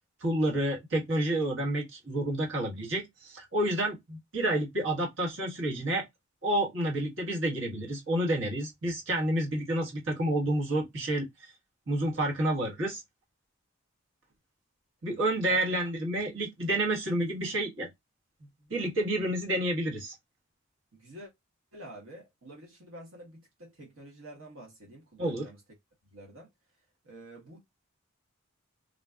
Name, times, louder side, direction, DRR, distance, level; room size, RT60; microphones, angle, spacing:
voice 1, 0.2-6.0 6.4-11.3 11.9-13.0 15.0-17.9 18.7-20.1 25.2-25.5, right 1 dB, 65° right, 1.5 m, -29 dB
voice 2, 20.9-21.3 21.7-25.6 26.1-26.5 27.0-27.6, right 1 dB, 85° right, 1.2 m, -48 dB
3.8 x 2.5 x 2.4 m
head